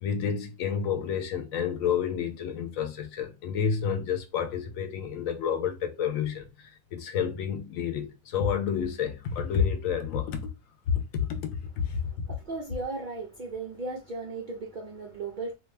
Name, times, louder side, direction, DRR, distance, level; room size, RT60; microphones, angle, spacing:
voice 1, 0.0-6.5 6.9-10.4 10.9-12.0, left 7 dB, 65° left, 1.0 m, -29 dB
voice 2, 12.0-15.5, right 3 dB, 75° right, 0.4 m, -36 dB
2.8 x 2.3 x 3.2 m
omnidirectional pair, 1.7 m